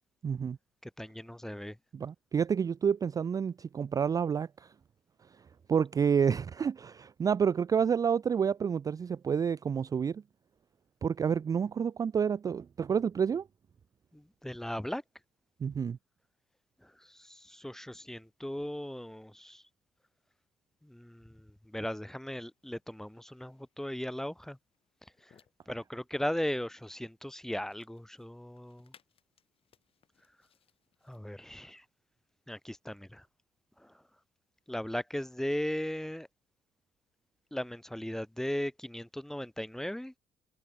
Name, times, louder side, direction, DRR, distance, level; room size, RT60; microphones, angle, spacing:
voice 1, 0.2-0.6 1.9-4.7 5.3-5.4 5.7-10.2 11.0-13.5 15.6-16.0, right 7 dB, 30° right, 0.3 m, -29 dB
voice 2, 0.8-1.8 14.1-15.0 16.8-19.6 20.8-24.6 25.2-25.3 25.7-28.9 31.0-31.8 32.5-33.2 33.8-33.9 34.7-36.3 37.5-40.1, left 1 dB, 5° left, 1.0 m, -37 dB
sound 1, 22.4-31.2, left 8 dB, 50° left, 3.9 m, -69 dB
cardioid pair, 95°, 12 cm